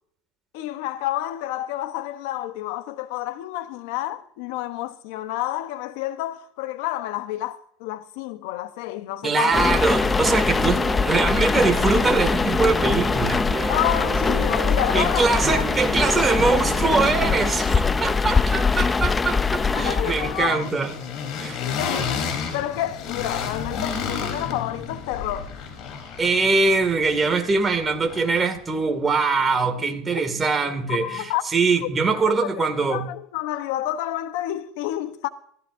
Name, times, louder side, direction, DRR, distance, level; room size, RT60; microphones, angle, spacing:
voice 1, 0.5-9.6 13.7-15.6 19.7-20.7 21.6-25.5 29.8-30.2 30.9-31.4 31.8-35.3, left 14 dB, 75° left, 1.0 m, -29 dB
voice 2, 9.2-13.5 14.9-20.9 21.4-21.6 26.2-31.3 31.5-33.0, right 4 dB, 20° right, 2.3 m, -22 dB
sound 1, 9.5-20.5, left 4 dB, 15° left, 0.5 m, -22 dB
sound 2, 9.9-17.6, right 7 dB, 35° right, 1.0 m, -33 dB
sound 3, 17.5-28.8, left 6 dB, 55° left, 3.8 m, -33 dB
23.5 x 14.0 x 2.7 m
supercardioid pair, 125°, 0 cm